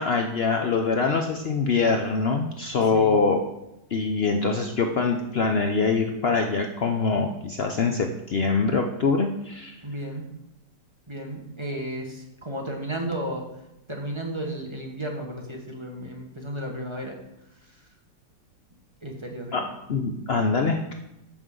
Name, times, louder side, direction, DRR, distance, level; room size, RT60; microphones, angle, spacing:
voice 1, 0.0-3.4 3.9-9.8 19.5-19.6 19.9-20.9, left 4 dB, 85° left, 3 dB, 0.5 m, -24 dB
voice 2, 9.8-10.2 11.1-13.5 13.9-17.2 19.0-19.7, right 1 dB, 20° right, 0 dB, 1.2 m, -33 dB
13.5 x 6.3 x 3.8 m, 0.88 s
omnidirectional pair, 2.0 m